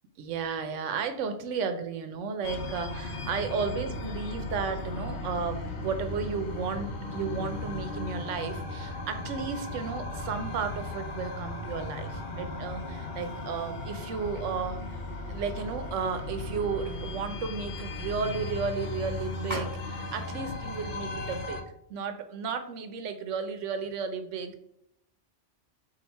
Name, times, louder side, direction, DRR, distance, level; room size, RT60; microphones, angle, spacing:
voice 1, 0.2-15.0 15.3-21.6 21.9-24.6, right 5 dB, 85° right, 8 dB, 1.0 m, -33 dB
sound 1, 2.4-21.6, left 2 dB, 55° left, 0.7 m, -36 dB
sound 2, 13.2-20.2, equal, 15° right, 2.0 m, -47 dB
5.1 x 2.4 x 4.1 m, 0.73 s
omnidirectional pair, 1.2 m